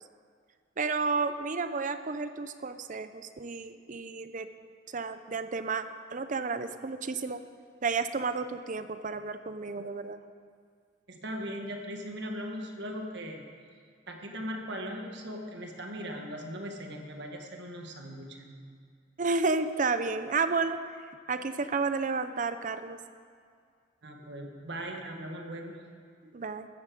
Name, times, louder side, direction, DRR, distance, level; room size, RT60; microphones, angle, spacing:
voice 1, 0.8-4.5 4.9-5.8 6.1-7.4 7.8-10.2 19.2-20.8 21.3-23.0 26.3-26.7, right 4 dB, 40° right, 11 dB, 0.6 m, -31 dB
voice 2, 11.1-13.5 14.1-18.5 24.0-25.8, equal, 60° right, 2 dB, 1.7 m, -39 dB
14.0 x 8.8 x 7.8 m, 2.2 s
head